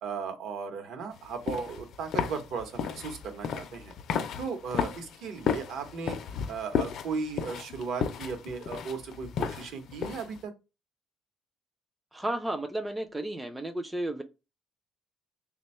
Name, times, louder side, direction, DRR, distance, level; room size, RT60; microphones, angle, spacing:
voice 1, 0.0-3.9 4.4-6.2 6.5-10.5, right 5 dB, 65° right, 0.8 m, -36 dB
sound 1, 1.2-10.4, left 7 dB, 60° left, 0.4 m, -34 dB
voice 2, 12.1-14.2, right 1 dB, 10° right, 0.3 m, -33 dB
3.3 x 2.2 x 4.2 m
cardioid pair, 140°, 0 cm